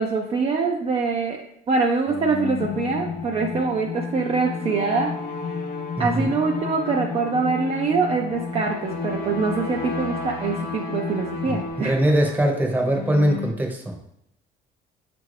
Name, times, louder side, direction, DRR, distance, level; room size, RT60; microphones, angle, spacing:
voice 1, 0.0-1.4 1.7-5.1 6.0-12.0, right 4 dB, 35° right, 1 dB, 0.4 m, -24 dB
sound 1, 2.1-13.5, left 3 dB, 65° left, 0.8 m, -35 dB
sound 2, 2.6-11.7, left 6 dB, 40° left, 0.4 m, -33 dB
voice 2, 6.0-6.3 11.5-13.9, right 1 dB, 10° right, 1 dB, 0.8 m, -22 dB
5.4 x 2.6 x 3.1 m, 0.77 s
cardioid pair, 110°, 17 cm